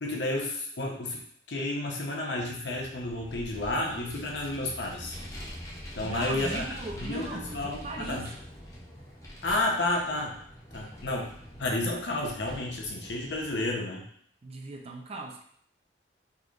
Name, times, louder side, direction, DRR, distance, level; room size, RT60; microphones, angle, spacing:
voice 1, 0.0-1.2 1.5-5.1 5.9-6.6 7.0-8.3 9.4-10.4 10.7-11.3 11.6-14.1, left 2 dB, 75° left, -1 dB, 0.8 m, -31 dB
Vehicle, 2.8-13.7, equal, 20° left, 0.8 m, -44 dB
voice 2, 6.0-8.3 14.4-15.4, right 2 dB, 35° right, 2 dB, 0.4 m, -38 dB
3.8 x 3.2 x 2.5 m, 0.63 s
head